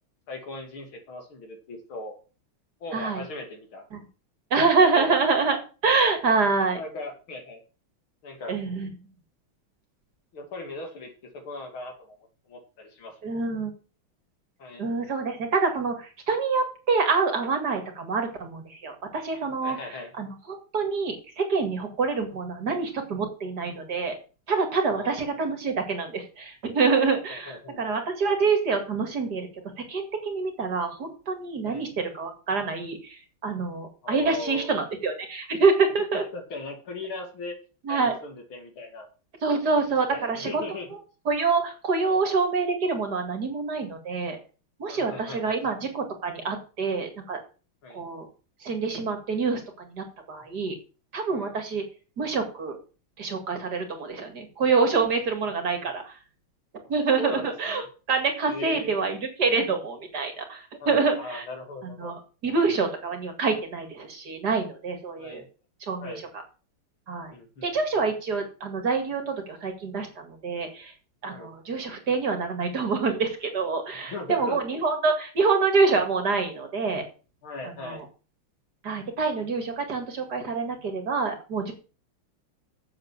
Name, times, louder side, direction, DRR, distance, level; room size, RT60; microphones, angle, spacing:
voice 1, 0.3-2.2 2.8-3.9 4.8-5.2 6.7-7.6 8.2-8.6 10.3-12.2 12.4-13.2 14.6-14.8 19.6-20.1 24.9-25.2 27.3-27.8 31.6-31.8 34.0-34.7 36.1-37.6 37.9-39.1 40.1-40.9 42.0-42.2 44.9-45.7 47.8-48.0 51.3-51.5 55.8-55.9 57.2-57.8 58.5-59.0 60.8-62.1 65.2-65.5 66.0-66.2 67.3-67.7 71.2-71.5 73.9-74.6 77.4-78.0, left 2 dB, 75° left, 4 dB, 3.3 m, -38 dB
voice 2, 2.9-3.2 3.9-4.0 4.5-6.8 8.5-8.9 13.2-13.7 14.8-24.1 24.5-29.5 29.8-36.2 37.8-38.1 39.4-40.6 40.9-41.0 41.3-44.4 44.8-47.4 47.9-48.3 48.6-50.8 51.1-51.8 52.2-52.8 53.2-56.2 56.9-61.5 61.8-65.4 65.8-66.1 67.1-67.3 67.6-70.9 71.2-77.1 77.6-78.1 78.8-81.7, right 4 dB, 50° right, 5 dB, 2.6 m, -26 dB
7.7 x 7.4 x 7.6 m, 0.35 s
omnidirectional pair, 2.3 m